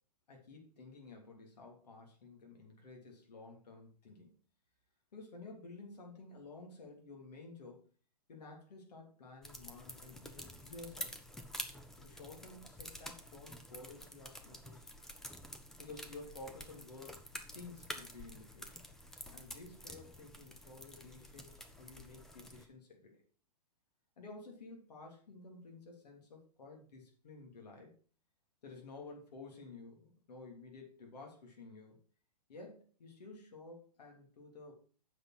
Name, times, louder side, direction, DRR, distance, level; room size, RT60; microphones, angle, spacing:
voice 1, 0.3-4.3 5.1-7.8 8.3-11.1 12.0-14.9 15.7-17.2 17.5-18.8 19.3-23.2 24.2-27.9 28.6-32.0 32.5-34.7, left 3 dB, 75° left, 1 dB, 3.1 m, -52 dB
sound 1, 9.4-22.7, left 1 dB, ahead, 0.4 m, -49 dB
7.9 x 5.3 x 5.9 m, 0.42 s
hypercardioid pair, 155°, 21 cm